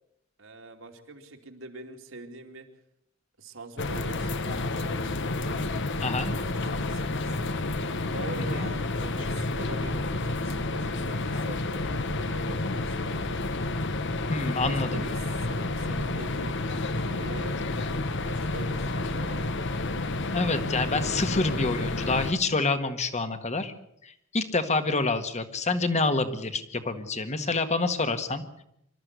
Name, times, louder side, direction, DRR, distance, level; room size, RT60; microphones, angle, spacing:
voice 1, 0.4-2.7 3.4-5.0 6.2-7.5 8.1-13.3 14.6-16.6 16.9-17.6 18.2-19.6, right 2 dB, 70° right, 4 dB, 2.7 m, -43 dB
sound 1, 3.8-22.3, left 2 dB, 60° left, 1.2 m, -30 dB
voice 2, 6.0-6.3 8.5-8.7 14.3-15.0 20.3-23.7 24.0-28.4, left 3 dB, 35° left, 9 dB, 1.7 m, -27 dB
25.5 x 13.5 x 8.2 m, 0.77 s
head